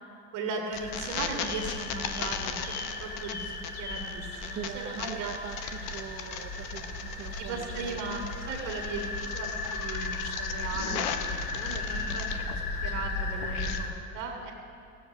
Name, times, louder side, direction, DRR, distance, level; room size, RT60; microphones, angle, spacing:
voice 1, 0.3-2.6 3.0-5.3 7.4-11.3 11.5-12.5 12.8-14.5, right 4 dB, 65° right, 0 dB, 1.9 m, -37 dB
sound 1, 0.7-12.6 12.9-13.8, left 9 dB, 65° left, 0.9 m, -38 dB
sound 2, 0.7-13.9, left 3 dB, 30° left, 2.4 m, -36 dB
voice 2, 4.5-8.3 10.9-11.1, right 9 dB, 40° right, 5 dB, 0.7 m, -42 dB
16.0 x 7.3 x 5.8 m, 2.5 s
hypercardioid pair, 85°, 35 cm